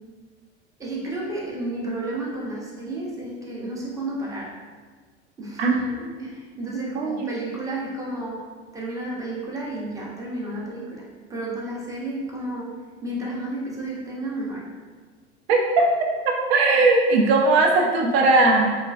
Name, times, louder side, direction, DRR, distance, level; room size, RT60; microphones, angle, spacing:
voice 1, 0.8-4.6 5.4-8.4 8.7-11.0 11.3-12.7 13.0-14.7, right 1 dB, 10° right, -4 dB, 0.5 m, -32 dB
voice 2, 6.9-7.3 15.5-15.8 16.2-18.8, right 3 dB, 55° right, 2 dB, 0.5 m, -19 dB
3.0 x 2.4 x 2.3 m, 1.5 s
figure-of-eight pair, 80°, 36 cm